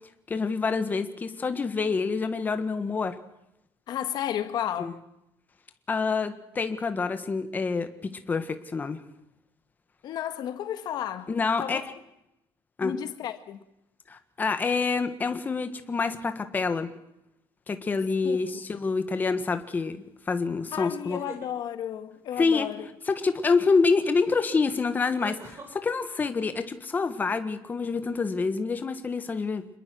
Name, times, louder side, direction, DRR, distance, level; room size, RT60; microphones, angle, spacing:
voice 1, 0.3-3.2 4.8-4.9 5.9-9.0 11.3-11.8 12.8-12.9 14.1-16.9 17.7-21.2 22.4-22.7 23.0-29.6, left 4 dB, 20° left, 1.5 m, -27 dB
voice 2, 3.9-5.0 10.0-11.3 11.6-11.8 12.8-13.6 18.2-18.4 20.7-22.9, left 10 dB, 50° left, 1.7 m, -32 dB
sound 1, 18.3-18.7 20.9-21.5 23.8-23.9 25.2-25.7, right 4 dB, 30° right, 3.8 m, -44 dB
27.0 x 21.0 x 6.3 m
cardioid pair, 165°, 9 cm